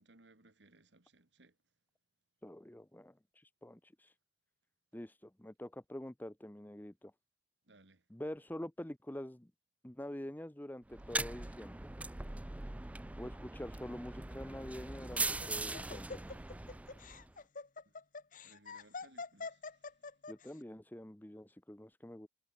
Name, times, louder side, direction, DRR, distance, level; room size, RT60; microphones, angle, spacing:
voice 1, 0.0-1.6 7.7-8.0 17.9-18.0 18.4-19.8, right 2 dB, 80° right, 2.1 m, -64 dB
voice 2, 2.4-4.1 4.9-7.1 8.1-9.5 9.8-11.9 13.2-16.3 20.3-22.3, left 1 dB, 10° left, 0.8 m, -46 dB
sound 1, 10.9-17.3, right 2 dB, 10° right, 0.3 m, -41 dB
Laughter, 15.0-20.5, left 4 dB, 50° left, 1.1 m, -46 dB
head